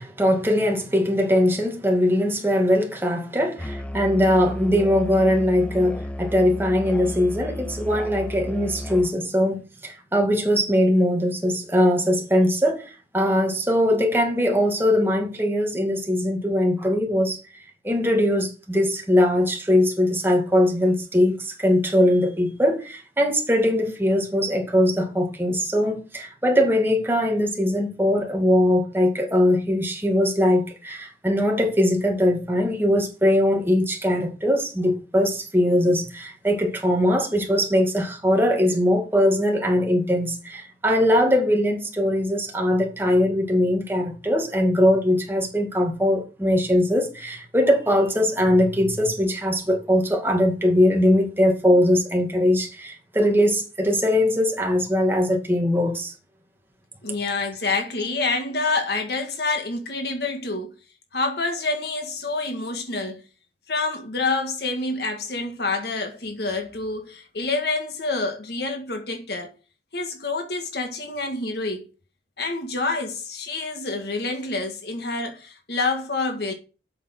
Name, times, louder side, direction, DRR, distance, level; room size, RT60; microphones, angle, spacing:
voice 1, 0.0-56.1, left 1 dB, 15° right, 2.3 m, -21 dB
Musical instrument, 3.6-9.2, left 1 dB, 5° left, 0.5 m, -33 dB
voice 2, 57.0-60.7 61.1-63.2 63.7-69.5 69.9-71.9 72.4-76.5, left 3 dB, 65° left, 1.8 m, -27 dB
8.2 x 6.6 x 6.4 m
head